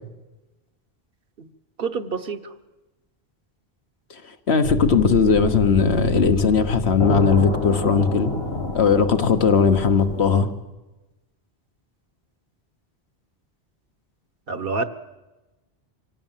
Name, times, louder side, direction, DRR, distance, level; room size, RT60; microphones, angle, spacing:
voice 1, 1.8-2.4 14.5-14.8, right 4 dB, 60° right, 1.3 m, -26 dB
voice 2, 4.5-8.3 8.7-10.5, left 5 dB, 90° left, 1.6 m, -18 dB
sound 1, 4.6-10.4, left 3 dB, 70° left, 2.2 m, -27 dB
25.0 x 17.0 x 7.5 m
omnidirectional pair, 1.1 m